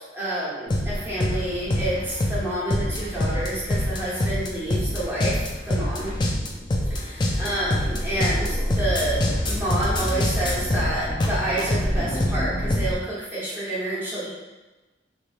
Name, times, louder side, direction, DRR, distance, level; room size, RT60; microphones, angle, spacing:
voice 1, 0.1-6.1 6.9-14.3, right 1 dB, 15° right, -9 dB, 1.1 m, -29 dB
sound 1, 0.7-12.9, left 1 dB, 25° left, 0.4 m, -25 dB
3.2 x 2.9 x 2.5 m, 1.2 s
head